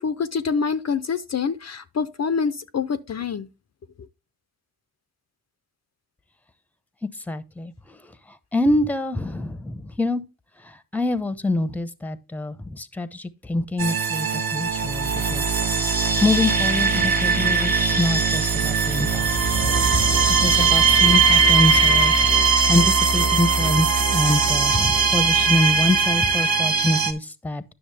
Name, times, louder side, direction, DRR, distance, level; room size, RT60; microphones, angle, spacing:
voice 1, 0.0-3.5, left 5 dB, 45° left, 0.5 m, -26 dB
voice 2, 7.3-8.0 8.3-10.2 10.6-15.5 16.2-19.3 19.6-20.0 20.4-27.6, left 2 dB, 5° left, 0.7 m, -25 dB
sound 1, 13.8-27.1, right 5 dB, 70° right, 1.2 m, -20 dB
10.0 x 6.1 x 3.3 m
cardioid pair, 65°, 38 cm